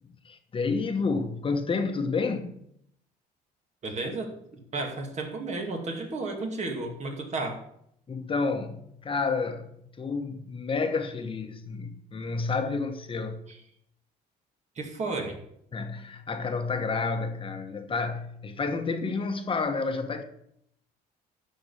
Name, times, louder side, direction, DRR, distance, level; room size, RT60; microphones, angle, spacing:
voice 1, 0.2-2.6 8.1-9.7 10.0-13.4 15.7-20.2, left 4 dB, 30° left, 1.2 m, -30 dB
voice 2, 3.8-7.6 14.8-15.4, right 3 dB, 45° right, 2.4 m, -33 dB
12.0 x 4.8 x 7.1 m
cardioid pair, 110°, 17 cm